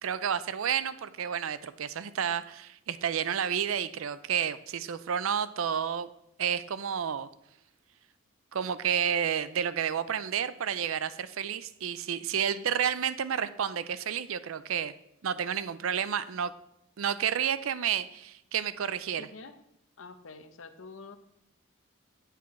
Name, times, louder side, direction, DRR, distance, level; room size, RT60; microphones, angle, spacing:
voice 1, 0.0-6.1 6.4-7.3 8.5-14.9 15.2-16.5 17.0-19.3, right 8 dB, 75° right, 15 dB, 0.5 m, -30 dB
voice 2, 19.2-19.6 20.0-21.2, left 4 dB, 70° left, 9 dB, 0.8 m, -46 dB
9.4 x 8.3 x 3.2 m, 0.82 s
head